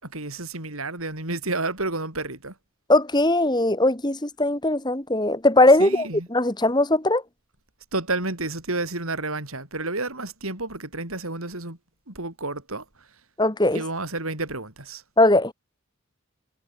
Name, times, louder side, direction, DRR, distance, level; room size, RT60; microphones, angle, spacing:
voice 1, 0.0-2.6 5.8-6.3 7.9-11.8 12.1-13.1 13.7-15.0, right 2 dB, 80° right, 6.0 m, -30 dB
voice 2, 2.9-6.1 6.3-7.2 13.4-13.8 15.2-15.5, left 2 dB, 20° left, 2.0 m, -19 dB
head